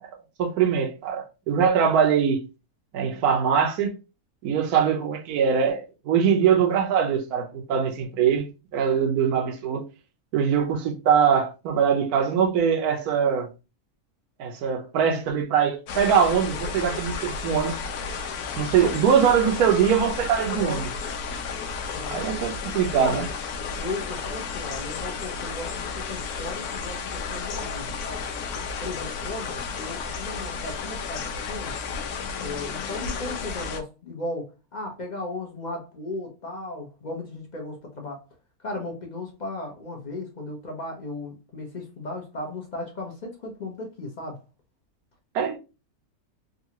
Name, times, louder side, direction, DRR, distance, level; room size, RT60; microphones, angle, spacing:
voice 1, 0.4-2.4 2.9-3.9 4.4-9.9 10.3-13.5 14.4-17.7 18.6-20.9 22.1-23.3 45.3-45.6, right 7 dB, 85° right, 1.2 m, -22 dB
sound 1, 15.9-33.8, left 5 dB, 80° left, 1.1 m, -32 dB
voice 2, 20.4-20.8 21.9-22.2 23.0-23.2 23.8-28.2 28.8-31.8 32.4-38.2 38.6-44.4, left 2 dB, 45° left, 0.6 m, -36 dB
3.7 x 2.3 x 2.8 m
omnidirectional pair, 1.6 m